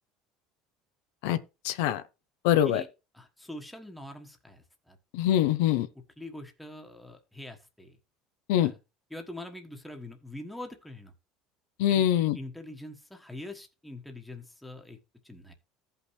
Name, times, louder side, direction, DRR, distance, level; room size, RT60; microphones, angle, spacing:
voice 1, 1.6-2.0 2.4-2.8 5.1-5.9 8.5-8.7 11.8-12.4, left 11 dB, 85° left, 0.7 m, -24 dB
voice 2, 3.1-5.0 6.2-8.0 8.6-8.8 9.1-11.1 11.9-12.0 12.3-15.0 15.2-15.5, left 1 dB, 5° left, 1.3 m, -43 dB
14.5 x 5.6 x 3.2 m
cardioid pair, 135°, 0 cm